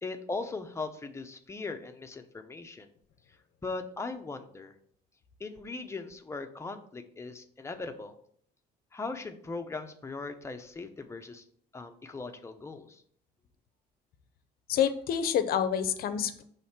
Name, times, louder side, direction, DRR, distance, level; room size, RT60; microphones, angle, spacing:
voice 1, 0.0-2.9 3.6-4.7 5.4-8.2 8.9-11.4 11.7-13.0, left 3 dB, 15° left, 6 dB, 0.7 m, -39 dB
voice 2, 14.7-16.4, left 8 dB, 65° left, 11 dB, 0.7 m, -28 dB
6.2 x 3.2 x 5.8 m, 0.62 s
cardioid pair, 110°, 17 cm